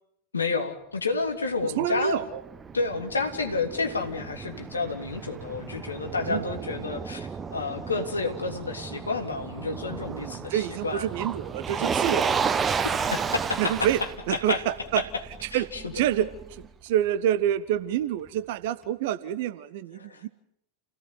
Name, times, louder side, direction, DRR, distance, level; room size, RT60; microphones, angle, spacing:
voice 1, 0.3-2.2 2.7-11.0 12.7-13.9 14.3-14.6 14.9-15.0 15.5-15.9 20.0-20.2, left 4 dB, 75° left, 5 dB, 3.3 m, -30 dB
Motor vehicle (road), 1.6-16.7, right 6 dB, 20° right, 1.2 m, -33 dB
voice 2, 1.6-2.4 6.3-6.4 10.1-12.6 13.6-14.0 14.3-15.0 15.4-15.7 15.9-16.3 16.6-20.3, right 11 dB, 50° right, 14 dB, 1.4 m, -27 dB
29.5 x 17.5 x 9.7 m, 0.73 s
figure-of-eight pair, 90°, 0 cm